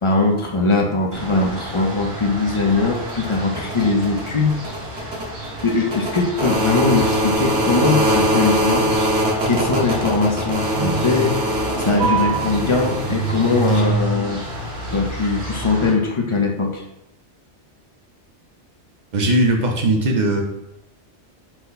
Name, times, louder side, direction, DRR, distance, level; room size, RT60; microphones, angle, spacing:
voice 1, 0.0-4.6 5.0-5.3 5.6-8.9 9.5-14.4 14.9-16.8, left 3 dB, 40° left, 1 dB, 0.5 m, -21 dB
sound 1, 1.1-15.9, right 1 dB, 70° right, 1.4 m, -23 dB
voice 2, 19.1-20.4, right 1 dB, 45° right, 2 dB, 0.8 m, -18 dB
5.8 x 2.2 x 4.0 m, 0.85 s
omnidirectional pair, 1.2 m